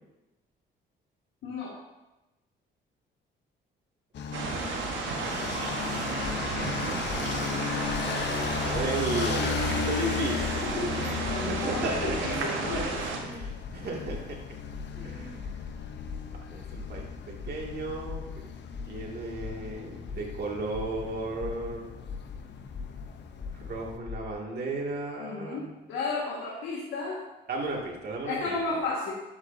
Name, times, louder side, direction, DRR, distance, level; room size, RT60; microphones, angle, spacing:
voice 1, 1.4-1.7 10.6-13.2 25.2-27.2 28.3-29.1, left 3 dB, 85° left, -5 dB, 1.8 m, -33 dB
sound 1, 4.1-24.0, left 6 dB, 65° left, 0.9 m, -36 dB
sound 2, 4.3-13.2, right 4 dB, 75° right, 1.3 m, -33 dB
sound 3, 6.2-6.6 7.1-7.4 7.9-8.2 8.7-9.1 9.6-9.9 10.4-10.7 11.2-11.6 12.1-12.4 12.7-13.0 13.4-13.7 14.1-14.4 14.7-15.0 15.4-15.7 16.1-16.4 16.7-17.0 17.4-17.7 18.1-18.4 18.7-19.0 19.4-19.7 20.1-20.4 20.7-21.0 21.4-21.7 22.1-22.4 22.7-23.0 23.4-23.7 24.1-24.3, left 5 dB, 35° left, 1.6 m, -39 dB
voice 2, 8.1-10.5 11.3-12.8 13.2-14.4 15.0-15.5 16.3-18.3 18.9-21.9 23.5-25.6 27.5-28.5, right 2 dB, 55° right, -2 dB, 2.4 m, -34 dB
11.0 x 8.0 x 2.8 m, 1.0 s
cardioid pair, 90°, 20 cm